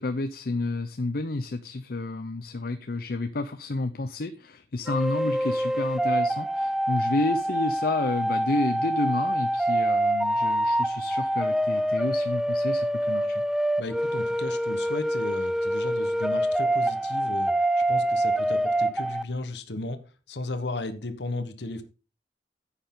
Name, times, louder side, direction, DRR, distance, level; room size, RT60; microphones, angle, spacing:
voice 1, 0.0-13.4, left 2 dB, 55° left, 9 dB, 0.7 m, -30 dB
sound 1, 4.9-19.2, right 1 dB, 5° right, 0.4 m, -26 dB
voice 2, 13.8-20.0 20.3-21.8, left 2 dB, 75° left, 9 dB, 1.2 m, -35 dB
10.0 x 8.1 x 3.8 m, 0.32 s
head